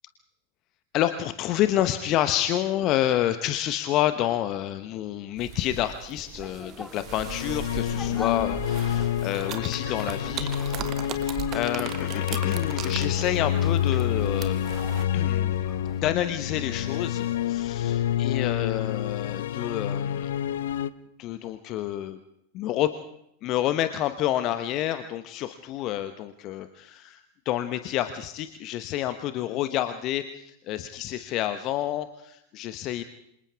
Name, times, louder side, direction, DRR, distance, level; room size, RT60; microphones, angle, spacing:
voice 1, 0.9-10.9 11.2-14.7 15.1-15.6 16.0-20.3 21.2-22.2 22.5-23.0 23.4-33.0, left 12 dB, 35° left, 11 dB, 1.1 m, -29 dB
sound 1, 5.4-15.1, right 10 dB, 35° right, 1.6 m, -38 dB
sound 2, 6.1-17.4, left 2 dB, 5° left, 2.2 m, -46 dB
sound 3, 7.1-20.9, left 10 dB, 60° left, 0.9 m, -28 dB
28.0 x 27.0 x 3.6 m, 0.77 s
figure-of-eight pair, 90°, 0 cm